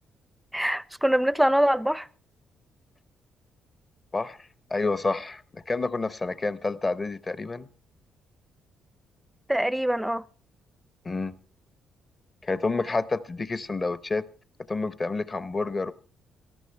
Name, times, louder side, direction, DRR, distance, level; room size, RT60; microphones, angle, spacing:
voice 1, 0.5-2.1 9.5-10.2, equal, 5° right, 0.5 m, -23 dB
voice 2, 4.1-7.7 11.0-11.3 12.4-14.3 14.7-15.9, left 3 dB, 30° left, 0.8 m, -29 dB
18.0 x 13.5 x 3.3 m
cardioid pair, 90°, 0 cm